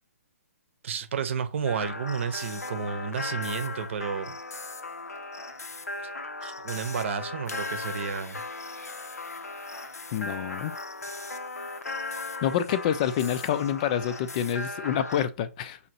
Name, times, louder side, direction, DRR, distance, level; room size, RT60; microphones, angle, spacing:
voice 1, 0.8-4.4 6.4-8.4, right 6 dB, 50° right, 0.8 m, -31 dB
sound 1, 1.7-15.3, left 3 dB, 80° left, 0.6 m, -37 dB
voice 2, 10.1-10.7 12.4-15.8, left 9 dB, 30° left, 0.4 m, -27 dB
6.3 x 2.8 x 2.8 m
figure-of-eight pair, 130°, 8 cm